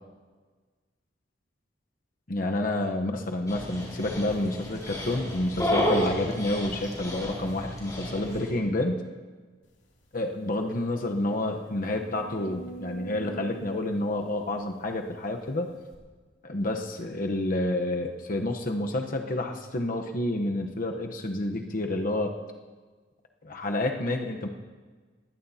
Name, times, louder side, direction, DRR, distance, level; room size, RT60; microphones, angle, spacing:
voice 1, 2.3-9.0 10.1-15.7 16.4-22.3 23.4-24.5, left 1 dB, 50° left, 3 dB, 0.9 m, -29 dB
Dog, 3.5-8.5, equal, 20° left, 3.9 m, -31 dB
sound 1, 9.9-10.0 10.4-10.5 11.0-15.3 15.9-16.0, right 3 dB, 75° left, 2.7 m, -45 dB
20.5 x 16.0 x 2.8 m, 1.4 s
head